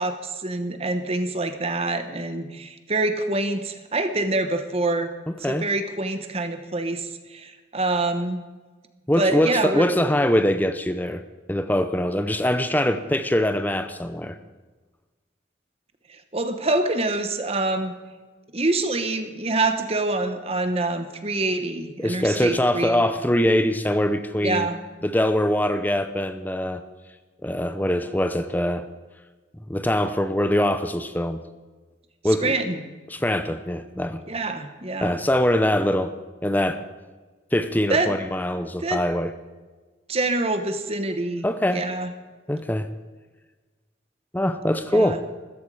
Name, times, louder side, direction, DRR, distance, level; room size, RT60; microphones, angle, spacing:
voice 1, 0.0-5.1 5.5-8.4 9.2-9.9 16.1-17.9 18.5-23.0 24.4-24.8 32.4-32.8 34.3-35.2 37.9-38.1 38.8-39.0 40.1-42.1 44.9-45.2, right 2 dB, 30° right, 8 dB, 1.1 m, -26 dB
voice 2, 5.3-5.7 9.1-11.2 11.5-14.4 22.0-24.7 25.0-26.8 27.4-28.9 29.7-31.4 32.2-32.6 33.1-34.2 35.0-36.1 36.4-36.8 37.5-39.3 41.4-41.8 42.5-42.9 44.3-45.2, left 1 dB, 10° left, 10 dB, 0.6 m, -23 dB
15.0 x 14.5 x 4.9 m, 1.3 s
head